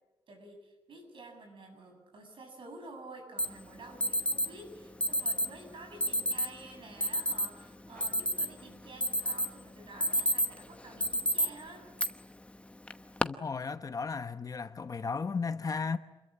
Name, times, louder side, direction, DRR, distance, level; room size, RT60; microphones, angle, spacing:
voice 1, 0.3-11.9, right 2 dB, 70° right, 7.9 m, -50 dB
Alarm, 3.4-3.5 4.0-4.5 5.0-5.5 6.0-6.5 7.0-7.5 7.9-8.6 9.0-9.5 9.9-10.6 11.0-11.5 12.0-12.1 12.9-13.2, equal, 15° left, 1.0 m, -29 dB
voice 2, 13.2-16.0, left 5 dB, 40° left, 1.1 m, -35 dB
27.5 x 22.0 x 8.6 m
wide cardioid pair, 130°, 9 cm